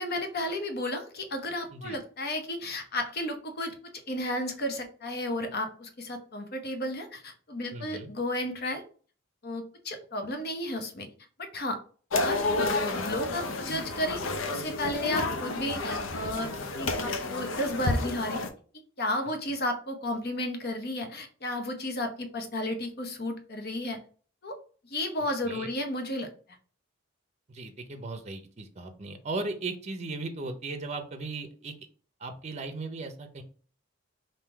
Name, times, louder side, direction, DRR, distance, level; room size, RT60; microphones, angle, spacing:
voice 1, 0.0-3.7 4.1-8.8 9.4-11.1 11.4-11.8 12.2-12.4 12.7-14.2 14.5-16.5 16.8-18.4 19.0-24.0 24.4-24.6 24.9-26.3, left 1 dB, 55° left, 6 dB, 0.9 m, -33 dB
voice 2, 7.7-8.1 25.4-25.7 27.5-31.7 32.2-33.4, right 3 dB, 35° right, 7 dB, 0.6 m, -37 dB
sound 1, 12.1-18.5, left 2 dB, 80° left, 0.7 m, -30 dB
3.6 x 2.7 x 4.4 m, 0.42 s
head